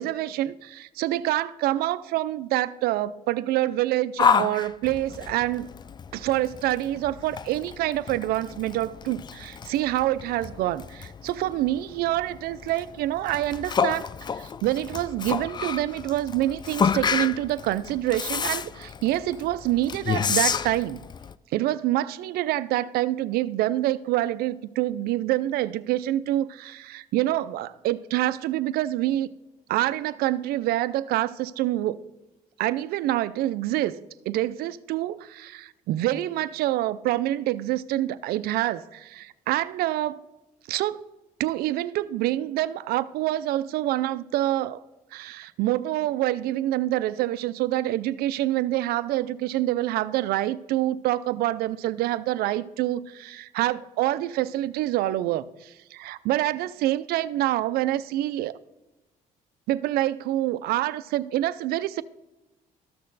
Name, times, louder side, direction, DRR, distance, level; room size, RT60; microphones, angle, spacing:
voice 1, 0.0-5.7 6.1-14.1 14.4-21.0 21.5-29.3 29.7-32.0 32.6-34.0 34.3-40.2 40.7-41.0 41.4-44.8 45.1-58.6 59.7-62.0, right 14 dB, 80° right, 0.5 m, -26 dB
Yell, 4.2-21.3, left 6 dB, 30° left, 0.4 m, -30 dB
13.5 x 6.5 x 4.0 m
cardioid pair, 90°, 16 cm